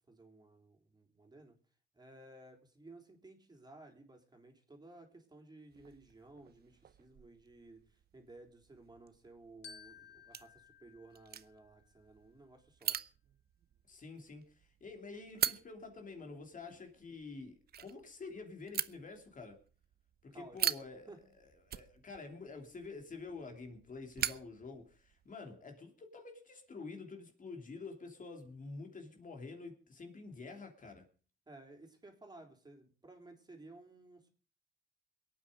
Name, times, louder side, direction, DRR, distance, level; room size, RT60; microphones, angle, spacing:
voice 1, 0.1-1.6 1.9-13.0 16.6-16.8 20.3-20.6 21.1-21.2 31.5-34.3, right 2 dB, 20° right, 3.7 m, -56 dB
sound 1, 5.7-25.3, right 9 dB, 50° right, 0.7 m, -44 dB
Glockenspiel, 9.6-12.1, left 6 dB, 60° left, 1.5 m, -57 dB
voice 2, 13.9-19.6 20.2-21.1 21.7-31.1, left 3 dB, 40° left, 3.0 m, -48 dB
22.5 x 9.0 x 5.1 m
cardioid pair, 90°, 20 cm